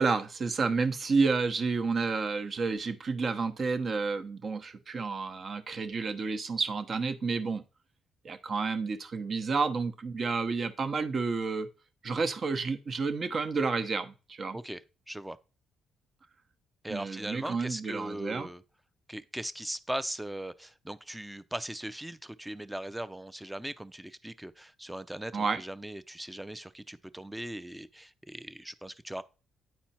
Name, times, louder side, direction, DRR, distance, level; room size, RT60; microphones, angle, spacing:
voice 1, 0.0-7.6 8.2-11.7 12.0-14.6 16.9-18.5 25.3-25.6, right 4 dB, 45° right, 1.0 m, -30 dB
voice 2, 15.1-15.4 16.8-18.6 19.1-29.2, right 1 dB, 5° right, 0.5 m, -39 dB
9.3 x 4.4 x 4.3 m
cardioid pair, 90°, 0 cm